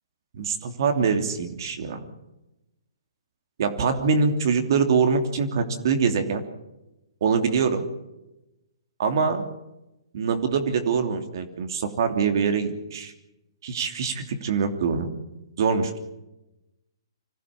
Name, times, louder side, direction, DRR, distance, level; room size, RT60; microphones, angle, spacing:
voice 1, 0.3-2.0 3.6-6.4 7.2-7.8 9.0-9.5 10.1-13.1 13.6-15.1 15.6-16.0, right 5 dB, 55° right, 6 dB, 2.9 m, -24 dB
25.5 x 15.5 x 7.4 m, 0.93 s
hypercardioid pair, 135°, 2 cm